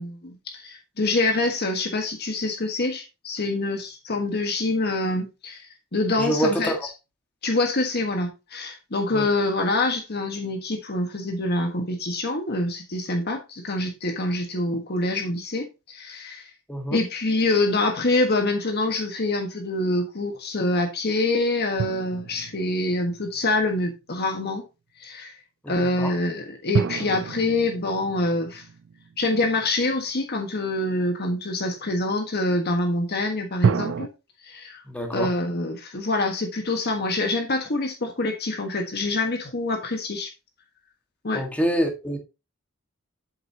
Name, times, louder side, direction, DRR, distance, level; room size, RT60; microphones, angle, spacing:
voice 1, 0.0-5.6 5.9-6.9 7.4-16.5 16.9-24.6 25.0-25.3 25.7-28.6 29.2-34.1 34.4-34.8 35.1-40.3 41.2-41.5, left 2 dB, 55° left, 1.4 m, -25 dB
voice 2, 6.2-6.8 9.1-9.3 16.7-17.0 25.6-26.1 34.9-35.3 41.3-42.2, right 1 dB, 5° left, 1.7 m, -26 dB
sound 1, 21.8-23.7 26.7-30.0 33.6-34.1, right 5 dB, 65° right, 0.4 m, -29 dB
8.1 x 7.8 x 2.8 m
head